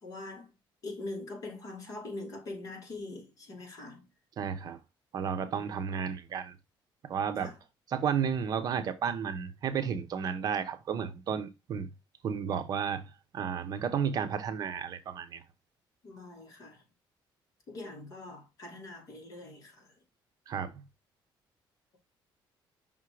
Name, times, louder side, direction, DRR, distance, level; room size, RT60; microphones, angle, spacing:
voice 1, 0.0-0.5 0.8-4.1 7.4-7.6 16.0-16.8 17.7-19.9, left 2 dB, 40° left, 2.5 m, -43 dB
voice 2, 4.4-4.8 5.1-6.5 7.0-7.5 7.9-11.9 12.2-13.0 13.3-15.4 20.5-20.8, right 7 dB, 45° right, 0.8 m, -32 dB
5.8 x 3.6 x 4.7 m
cardioid pair, 165°, 9 cm